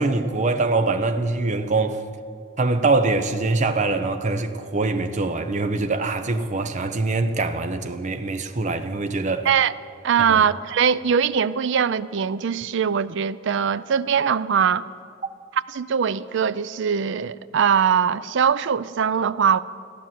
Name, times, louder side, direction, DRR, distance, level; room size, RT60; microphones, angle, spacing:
voice 1, 0.0-2.0 2.6-9.5 10.3-10.5, right 3 dB, 40° right, 0.8 m, -23 dB
voice 2, 10.0-14.9 15.7-19.6, right 7 dB, 65° right, 0.4 m, -21 dB
15.0 x 10.0 x 7.5 m
head